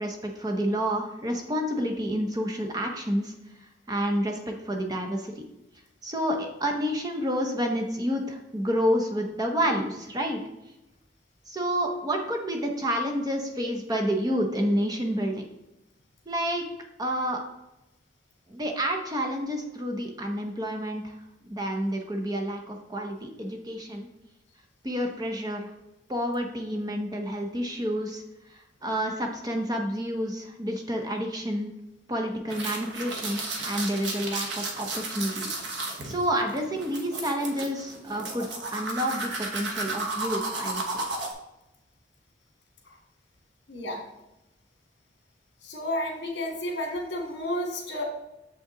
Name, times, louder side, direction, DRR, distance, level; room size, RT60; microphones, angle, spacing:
voice 1, 0.0-3.3 3.9-5.4 6.0-10.4 11.5-15.5 16.3-16.7 17.0-17.4 18.5-21.2 21.5-24.1 24.8-25.7 26.1-31.7 32.1-41.0, equal, 20° right, 2 dB, 0.7 m, -29 dB
sound 1, 32.5-41.3, right 2 dB, 70° right, 1.2 m, -33 dB
voice 2, 43.7-44.0 45.6-48.0, left 1 dB, 60° left, 1 dB, 1.9 m, -31 dB
7.2 x 5.4 x 3.8 m, 0.94 s
head